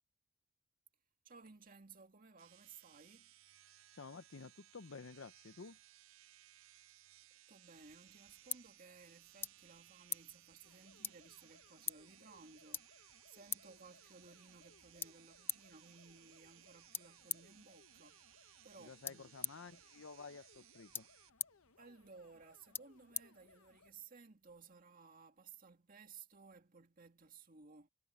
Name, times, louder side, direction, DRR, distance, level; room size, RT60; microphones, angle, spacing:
voice 1, 1.2-3.3 7.5-13.0 13.3-19.8 21.8-27.9, right 5 dB, 40° right, 2.1 m, -59 dB
sound 1, 2.4-21.3, right 14 dB, 75° right, 0.6 m, -64 dB
voice 2, 3.9-5.8 18.8-21.1, left 4 dB, 65° left, 0.7 m, -52 dB
sound 2, 7.7-24.0, left 5 dB, 10° left, 0.4 m, -49 dB
sound 3, 10.6-23.9, left 4 dB, 80° left, 1.0 m, -68 dB
head